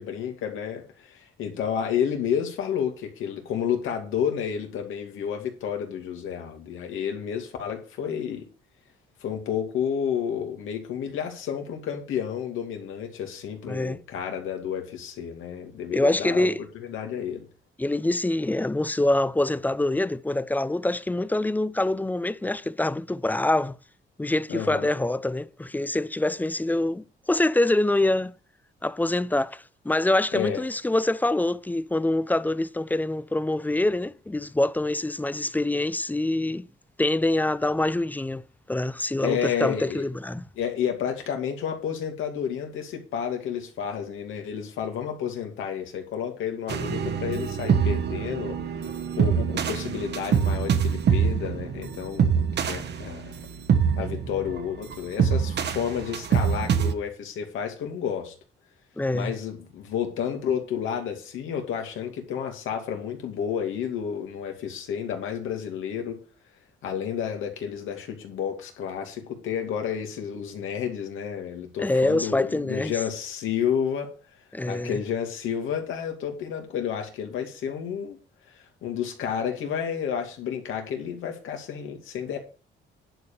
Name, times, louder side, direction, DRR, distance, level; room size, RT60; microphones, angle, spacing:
voice 1, 0.0-8.5 9.2-16.5 16.7-17.5 24.5-24.9 30.3-30.6 39.2-40.1 40.6-48.6 49.2-53.3 54.0-58.3 59.1-66.2 66.8-74.1 74.7-78.2 78.8-82.4, left 8 dB, 85° left, 2.5 m, -31 dB
voice 2, 13.6-14.0 15.9-16.6 17.8-23.7 24.2-28.3 28.8-36.7 37.0-40.5 59.0-59.3 71.8-72.9 74.5-75.0, left 2 dB, 10° left, 0.5 m, -25 dB
sound 1, 46.7-56.9, right 7 dB, 60° right, 1.2 m, -25 dB
10.5 x 5.2 x 6.9 m
cardioid pair, 90°, 20 cm